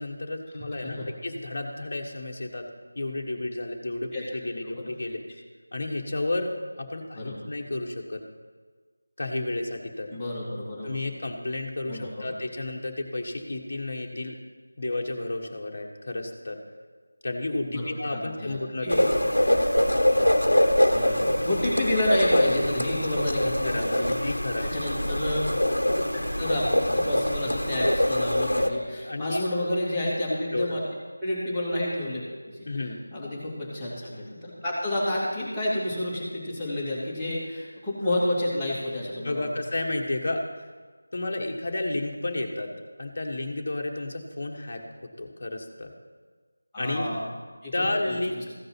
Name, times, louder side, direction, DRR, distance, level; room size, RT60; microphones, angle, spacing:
voice 1, 0.0-2.7 2.9-5.2 5.7-8.2 9.2-10.1 10.8-14.4 14.8-16.6 17.2-19.2 23.6-24.7 29.0-29.5 30.3-30.7 32.6-33.0 39.2-40.4 41.1-42.7 43.0-44.8 45.2-45.9 46.8-47.1 47.7-48.4, left 2 dB, 45° left, 2 dB, 1.3 m, -31 dB
voice 2, 0.7-1.1 4.1-4.2 4.7-4.9 7.2-7.4 10.1-11.0 11.9-12.3 17.7-19.0 20.9-24.3 24.6-25.5 26.1-30.8 31.2-39.5 46.7-47.2 47.6-48.4, left 1 dB, 5° left, -13 dB, 2.2 m, -30 dB
sound 1, 18.9-28.7, left 1 dB, 80° left, 0.9 m, -24 dB
14.5 x 5.3 x 5.9 m, 1.4 s
figure-of-eight pair, 165°, 0 cm